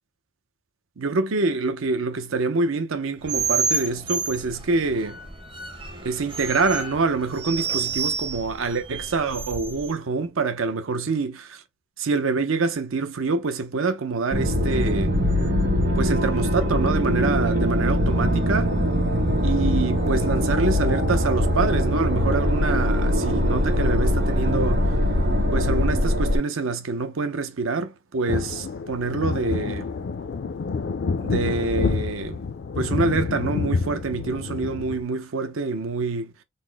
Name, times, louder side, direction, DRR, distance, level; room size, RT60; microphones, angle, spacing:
voice 1, 1.0-5.2 6.0-11.6 12.0-15.2 16.0-18.7 19.4-24.9 25.5-29.9 31.2-32.4 32.8-36.3, right 4 dB, 80° right, 0.6 m, -26 dB
sound 1, 3.2-9.9, right 5 dB, 25° right, 0.6 m, -29 dB
sound 2, 14.3-26.4, equal, 60° right, 1.7 m, -22 dB
sound 3, 28.3-35.0, left 4 dB, 55° left, 0.3 m, -28 dB
4.1 x 2.0 x 3.4 m
head